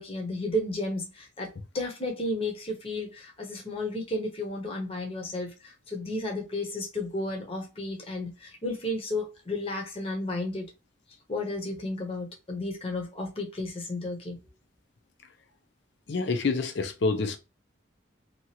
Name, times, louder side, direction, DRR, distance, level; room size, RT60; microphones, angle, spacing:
voice 1, 0.0-10.7 11.3-14.4, left 1 dB, 30° left, 0.8 m, -33 dB
voice 2, 16.1-17.4, left 3 dB, 60° left, 0.5 m, -27 dB
2.9 x 2.4 x 2.8 m
head